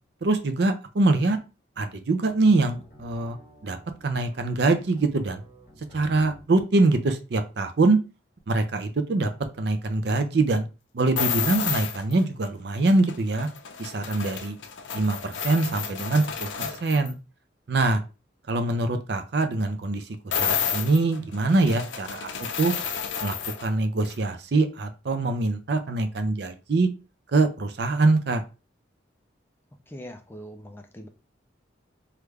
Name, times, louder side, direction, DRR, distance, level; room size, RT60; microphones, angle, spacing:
voice 1, 0.2-1.4 1.8-3.4 3.6-3.8 4.0-5.4 5.9-8.0 8.5-9.3 9.6-10.7 10.9-13.5 13.8-14.6 14.9-17.2 17.7-18.0 18.5-22.3 22.6-22.7 23.2-26.9 27.3-28.4, right 2 dB, 55° right, 0.5 m, -24 dB
sound 1, 2.6-6.5, equal, 50° left, 1.7 m, -50 dB
sound 2, 11.2-12.2 12.9-17.1 20.3-23.7 24.0-24.2, left 7 dB, 75° left, 0.5 m, -31 dB
voice 2, 29.9-31.1, equal, 10° left, 0.3 m, -41 dB
3.4 x 2.3 x 3.2 m
head